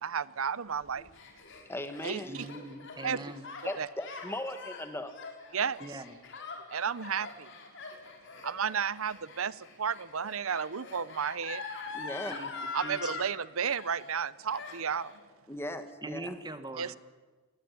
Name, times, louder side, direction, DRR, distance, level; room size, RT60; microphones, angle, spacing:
voice 1, 0.0-1.1 2.0-2.4 3.0-3.2 3.8-3.9 5.5-5.8 6.7-7.5 8.4-11.6 12.7-15.1 16.8-17.0, right 7 dB, 70° right, 0.7 m, -32 dB
Gasp, 0.8-13.3 13.6-14.2 14.5-15.2, left 4 dB, 60° left, 4.3 m, -43 dB
voice 2, 1.7-2.3 3.1-3.2 3.6-5.2 11.9-12.5 15.5-16.4, left 1 dB, 10° left, 1.7 m, -38 dB
voice 3, 2.2-3.4 5.8-6.1 12.2-12.5 12.8-13.1 16.0-16.9, right 1 dB, 20° right, 1.5 m, -42 dB
22.0 x 18.5 x 9.6 m
head